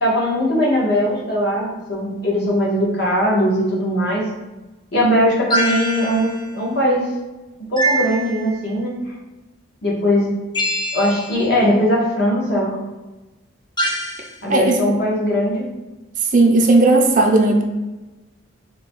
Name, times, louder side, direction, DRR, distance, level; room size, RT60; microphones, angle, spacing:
voice 1, 0.0-4.2 4.9-7.1 7.7-8.9 9.8-10.3 10.9-12.8 14.4-15.6, equal, 55° left, -4 dB, 1.2 m, -19 dB
sound 1, 5.5-6.5 7.8-8.7 10.5-11.5 13.8-14.3, right 1 dB, 20° left, 0.5 m, -23 dB
voice 2, 16.3-17.6, right 2 dB, 40° right, 3 dB, 0.5 m, -14 dB
3.8 x 2.2 x 4.5 m, 1.1 s
head